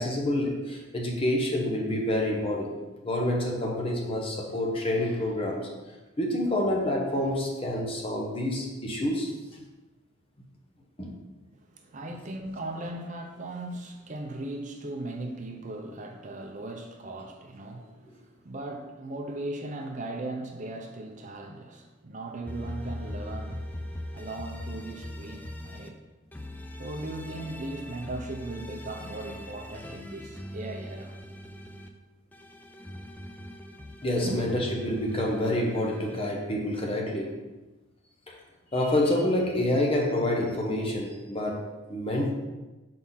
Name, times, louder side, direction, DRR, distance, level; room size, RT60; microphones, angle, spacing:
voice 1, 0.0-2.7 3.0-5.7 6.2-9.3 11.0-11.2 34.0-37.4 38.3-38.4 38.7-42.3, left 1 dB, 30° left, -1 dB, 0.9 m, -28 dB
voice 2, 11.6-23.7 24.1-26.0 26.8-31.1 34.2-34.5, right 2 dB, 40° right, 3 dB, 0.6 m, -38 dB
sound 1, 22.5-25.9 26.3-31.9 32.3-36.2, equal, 10° left, 0.4 m, -41 dB
4.7 x 4.0 x 5.6 m, 1.2 s
head